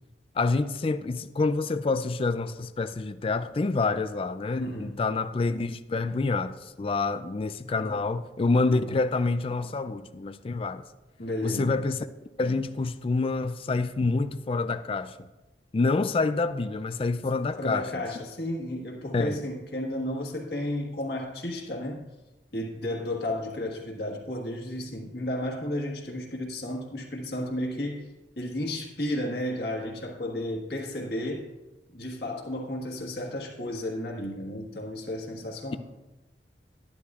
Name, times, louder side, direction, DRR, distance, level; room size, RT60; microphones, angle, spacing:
voice 1, 0.4-10.8 11.4-12.1 12.4-15.3 15.7-17.9 19.1-19.4, left 3 dB, 30° left, 0.4 m, -27 dB
voice 2, 4.6-5.0 7.8-8.0 8.7-8.9 11.2-11.8 17.6-22.1 22.5-28.1 28.4-31.5 31.9-35.8, left 1 dB, 65° left, 1.5 m, -33 dB
11.5 x 11.0 x 2.4 m
head